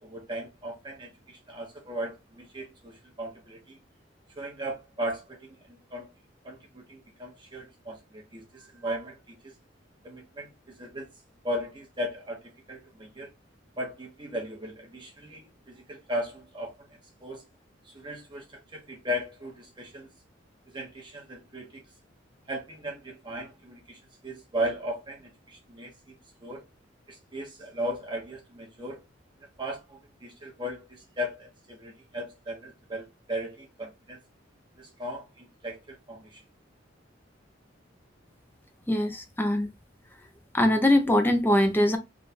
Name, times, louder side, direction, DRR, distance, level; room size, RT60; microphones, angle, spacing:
voice 1, 0.0-3.8 4.3-6.1 6.4-9.5 10.0-11.1 11.4-12.4 12.7-13.3 13.8-17.4 17.8-20.1 20.7-21.8 22.5-26.1 26.4-26.6 27.1-29.0 29.6-34.2 34.8-36.4, equal, 25° right, 1.1 m, -37 dB
voice 2, 38.9-39.7 40.5-42.0, left 1 dB, 10° left, 0.6 m, -22 dB
3.6 x 2.5 x 4.2 m
head